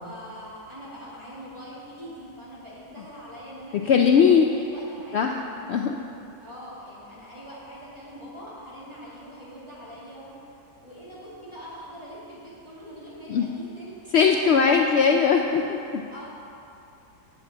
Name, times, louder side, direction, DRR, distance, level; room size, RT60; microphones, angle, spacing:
voice 1, 0.0-4.2 4.5-5.3 6.4-10.3 10.8-14.8 16.1-16.3, equal, 15° right, -9 dB, 2.7 m, -43 dB
voice 2, 3.9-4.5 5.1-5.4 5.7-6.0 13.3-13.5 14.1-16.0, left 6 dB, 85° left, 3 dB, 0.5 m, -19 dB
8.8 x 5.9 x 7.5 m, 2.7 s
omnidirectional pair, 1.7 m